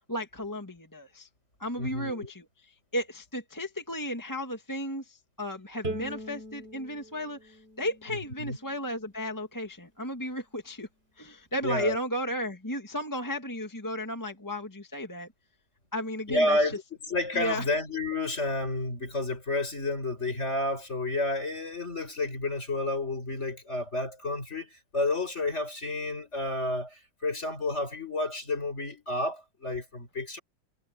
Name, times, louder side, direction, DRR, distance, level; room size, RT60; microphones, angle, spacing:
voice 1, 0.1-1.3 1.6-10.9 11.2-15.3 15.9-16.7 17.3-17.7, equal, 10° left, 1.7 m, -34 dB
voice 2, 1.8-2.3 8.4-8.6 11.6-12.0 16.3-30.4, left 2 dB, 35° left, 6.2 m, -30 dB
Bowed string instrument, 5.8-9.1, right 1 dB, 30° right, 3.8 m, -41 dB
omnidirectional pair, 2.2 m